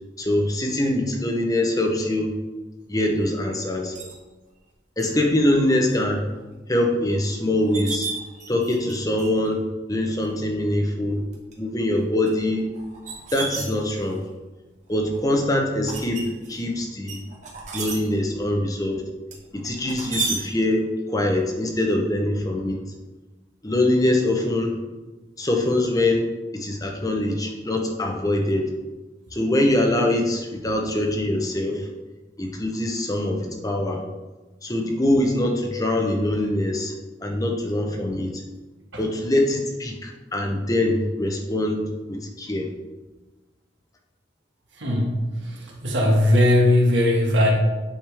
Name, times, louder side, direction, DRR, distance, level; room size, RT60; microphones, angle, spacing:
voice 1, 0.2-2.4 2.9-4.0 5.0-6.3 6.7-8.1 8.5-9.6 9.9-11.2 11.6-12.6 13.3-14.2 14.9-17.2 17.7-19.0 19.5-22.8 23.6-24.8 25.4-26.3 26.5-28.7 29.3-31.9 32.4-34.0 34.6-36.9 37.2-38.4 39.0-42.7, left 1 dB, 20° left, 2 dB, 0.8 m, -23 dB
sound 1, 4.0-4.2 5.0-5.1 5.5-5.9 6.4-6.5 7.2-7.3 7.6-8.9 9.2-9.5 10.2-10.3 11.2-11.5 12.3-14.2 14.8-15.2 15.9-16.6 17.1-18.0 19.3-20.4, right 4 dB, 40° right, 1.4 m, -32 dB
voice 2, 44.8-47.5, left 1 dB, 75° right, -1 dB, 1.7 m, -19 dB
8.8 x 5.1 x 3.5 m, 1.2 s
head